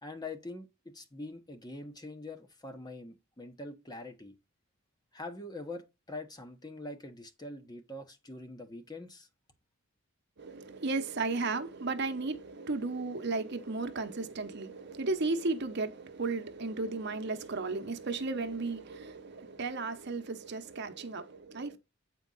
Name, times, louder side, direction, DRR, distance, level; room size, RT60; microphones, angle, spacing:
voice 1, 0.0-4.3 5.1-9.3, left 2 dB, 20° left, 1.1 m, -44 dB
voice 2, 10.4-21.8, right 3 dB, 55° right, 1.0 m, -34 dB
8.6 x 4.5 x 4.0 m
head